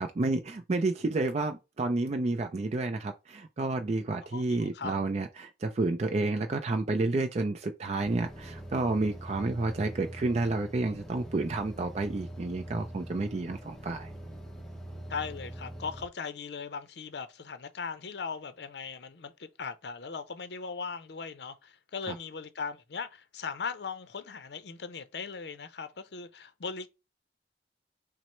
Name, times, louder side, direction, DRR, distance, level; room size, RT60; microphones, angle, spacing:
voice 1, 0.0-14.1 22.1-22.2, right 2 dB, 35° right, 0.4 m, -30 dB
voice 2, 4.3-4.9 15.1-26.9, left 5 dB, 65° left, 0.5 m, -39 dB
sound 1, 8.1-16.1, right 1 dB, 5° left, 0.8 m, -43 dB
6.0 x 2.0 x 4.3 m
head